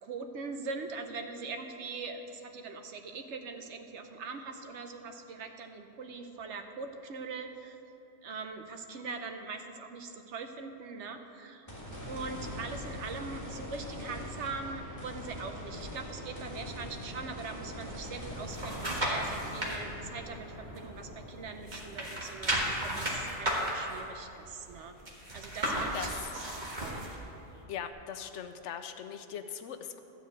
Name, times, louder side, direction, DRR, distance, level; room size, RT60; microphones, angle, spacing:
voice 1, 0.0-7.8 8.2-11.7 12.1-25.0 25.3-27.0, right 4 dB, 75° right, 6 dB, 1.1 m, -42 dB
sound 1, 11.7-24.0 24.5-24.6 27.9-28.0, left 1 dB, 15° left, 2.1 m, -43 dB
sound 2, 18.1-19.8 20.2-21.3 21.6-27.2 27.6-27.7, right 1 dB, 40° right, 1.6 m, -34 dB
voice 2, 27.7-30.0, left 8 dB, 80° left, 9 dB, 0.9 m, -40 dB
12.5 x 4.7 x 7.9 m, 2.9 s
omnidirectional pair, 1.2 m